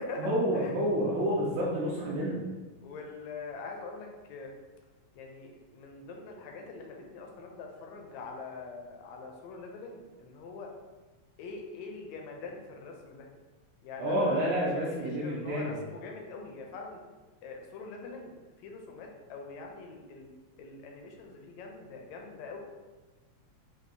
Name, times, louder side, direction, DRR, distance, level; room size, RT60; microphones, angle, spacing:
voice 1, 0.2-2.4 14.0-15.8, equal, 85° right, -7 dB, 2.0 m, -29 dB
voice 2, 2.8-4.5 5.1-10.7 11.4-13.3 13.8-17.0 17.4-18.3 18.6-20.3 20.6-22.6, left 3 dB, 80° left, 1 dB, 1.7 m, -43 dB
6.1 x 2.4 x 2.6 m, 1.2 s
omnidirectional pair, 3.3 m